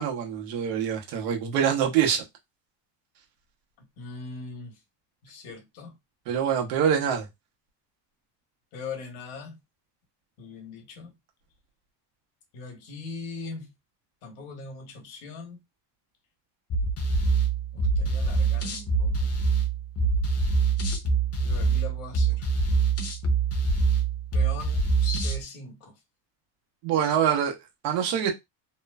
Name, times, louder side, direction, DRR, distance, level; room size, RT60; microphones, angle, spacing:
voice 1, 0.0-2.2 6.3-7.3 26.8-27.6 27.8-28.3, right 8 dB, 80° right, 1.0 m, -25 dB
voice 2, 3.8-4.7 5.2-5.9 8.7-9.6 10.4-11.1 12.5-13.7 14.2-15.6 17.7-19.3 21.4-22.5 24.3-25.9, left 4 dB, 70° left, 1.2 m, -40 dB
sound 1, 16.7-25.4, right 4 dB, 30° left, 0.7 m, -25 dB
3.0 x 2.0 x 2.3 m
supercardioid pair, 110°, 49 cm